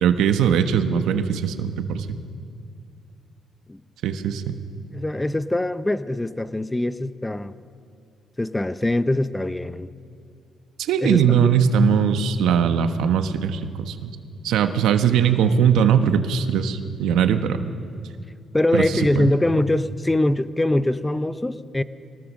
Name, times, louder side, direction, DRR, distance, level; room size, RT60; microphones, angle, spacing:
voice 1, 0.0-2.2 4.0-4.5 10.8-14.1 14.4-17.6 18.7-18.8 19.1-19.3, right 7 dB, 85° right, 8 dB, 1.2 m, -20 dB
voice 2, 4.9-7.5 8.4-9.9 11.0-11.5 18.5-21.8, left 1 dB, 10° left, 13 dB, 0.7 m, -23 dB
23.5 x 19.0 x 6.5 m, 2.3 s
cardioid pair, 90°, 0 cm